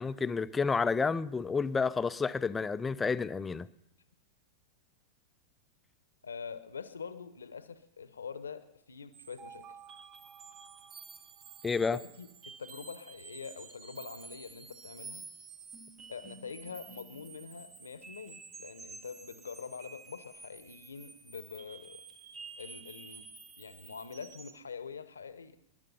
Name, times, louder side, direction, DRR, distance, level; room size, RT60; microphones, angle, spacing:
voice 1, 0.0-3.7 11.6-12.0, left 4 dB, 15° left, 0.5 m, -30 dB
voice 2, 6.2-9.6 11.8-15.3 16.1-22.0 22.6-23.3 23.6-25.6, left 6 dB, 75° left, 1.0 m, -45 dB
sound 1, 9.1-24.6, right 5 dB, 25° right, 1.0 m, -50 dB
22.0 x 11.0 x 5.5 m
figure-of-eight pair, 95°, 0 cm